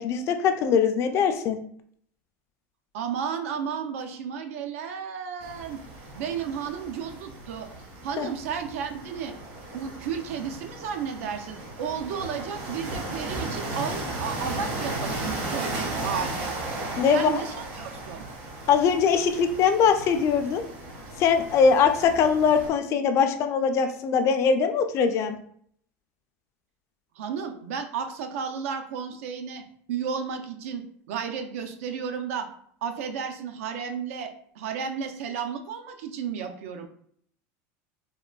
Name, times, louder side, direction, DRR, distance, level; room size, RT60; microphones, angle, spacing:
voice 1, 0.0-1.6 8.2-8.3 17.0-17.3 18.7-20.6 21.2-25.4, left 6 dB, 40° left, 7 dB, 0.3 m, -22 dB
voice 2, 2.9-5.8 6.2-7.7 8.0-9.4 9.7-16.6 17.1-18.2 27.2-29.6 29.9-32.5 32.8-36.9, right 7 dB, 85° right, 7 dB, 0.4 m, -33 dB
sound 1, 5.4-22.7, right 2 dB, 65° right, 1.2 m, -36 dB
3.6 x 2.1 x 2.3 m, 0.63 s
supercardioid pair, 135°, 7 cm